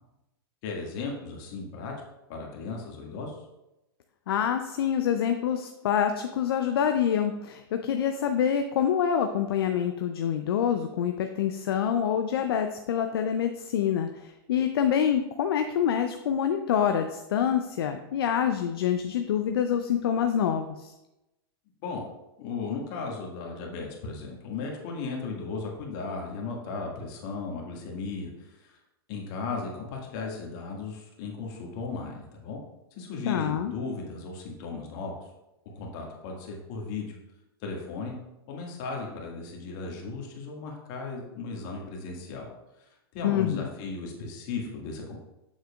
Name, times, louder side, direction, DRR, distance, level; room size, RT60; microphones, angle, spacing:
voice 1, 0.6-1.9 2.3-3.4 21.8-22.1 22.4-28.8 29.1-32.6 32.9-35.1 35.7-37.2 37.6-38.2 38.5-42.5 42.8-45.2, left 4 dB, 50° left, 0 dB, 1.8 m, -36 dB
voice 2, 4.3-20.9 33.3-33.7 43.2-43.7, left 8 dB, 70° left, 6 dB, 0.5 m, -26 dB
7.3 x 6.3 x 2.4 m, 0.94 s
hypercardioid pair, 105°, 13 cm